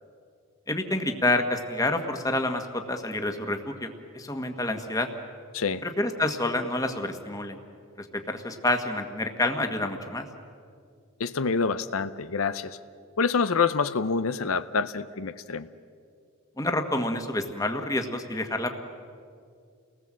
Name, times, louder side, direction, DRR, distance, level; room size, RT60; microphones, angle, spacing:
voice 1, 0.7-5.1 5.8-7.6 8.0-10.2 16.6-18.7, left 2 dB, 15° left, 5 dB, 1.6 m, -28 dB
voice 2, 11.2-12.8 13.2-15.7, left 5 dB, 85° left, 12 dB, 0.7 m, -27 dB
29.5 x 19.5 x 7.6 m, 2.3 s
head